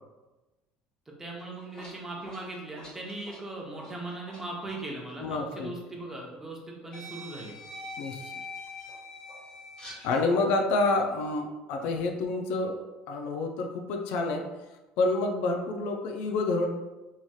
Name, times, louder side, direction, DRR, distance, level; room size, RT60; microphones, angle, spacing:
voice 1, 1.1-7.5, right 2 dB, 15° right, -2 dB, 0.7 m, -39 dB
sound 1, 1.4-4.4 4.7-4.9 6.0-6.1 6.9-10.3, left 1 dB, 35° left, 1.4 m, -44 dB
voice 2, 5.2-5.7 8.0-8.2 10.0-14.4 15.0-16.7, left 2 dB, 75° left, 3 dB, 0.4 m, -28 dB
3.0 x 2.8 x 2.3 m, 1.1 s
supercardioid pair, 100°, 3 cm